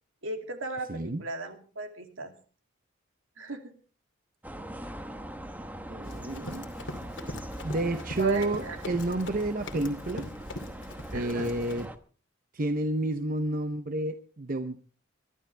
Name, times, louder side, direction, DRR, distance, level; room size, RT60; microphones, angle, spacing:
voice 1, 0.2-2.3 3.4-3.7 8.1-8.8 11.1-11.5, right 3 dB, 75° right, 5 dB, 2.7 m, -35 dB
voice 2, 0.9-1.2 5.9-6.7 7.6-10.3 11.1-11.9 12.5-14.9, right 1 dB, 40° right, 9 dB, 0.8 m, -30 dB
sound 1, 4.4-12.0, right 1 dB, 10° right, 0.9 m, -41 dB
Run, 6.0-11.9, left 1 dB, 60° left, 2.6 m, -42 dB
23.5 x 12.5 x 3.3 m, 0.39 s
head